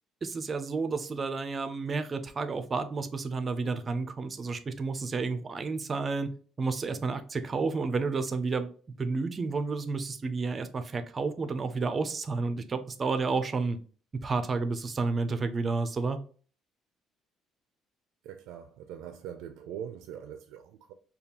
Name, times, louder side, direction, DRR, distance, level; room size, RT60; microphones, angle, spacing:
voice 1, 0.2-6.3 6.6-8.7 9.0-13.8 14.2-16.2, right 4 dB, 25° right, 0.4 m, -31 dB
voice 2, 18.2-20.9, right 9 dB, 90° right, 0.4 m, -42 dB
5.1 x 2.3 x 2.9 m
cardioid pair, 170°, 0 cm